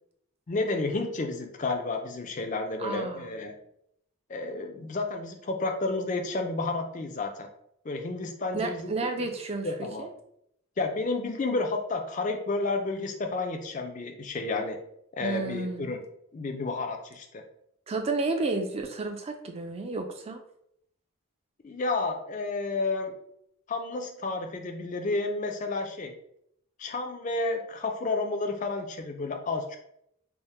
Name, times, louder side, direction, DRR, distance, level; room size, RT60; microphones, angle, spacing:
voice 1, 0.5-3.5 4.3-7.5 7.8-9.1 9.6-10.1 10.8-14.8 15.1-16.0 16.3-17.4 21.6-23.1 23.7-26.1 26.8-29.8, left 3 dB, 35° left, 5 dB, 0.4 m, -31 dB
voice 2, 2.8-3.4 8.5-9.7 10.0-10.1 15.2-15.9 17.9-20.4, right 3 dB, 25° right, 4 dB, 0.4 m, -31 dB
3.5 x 2.1 x 4.2 m, 0.75 s
head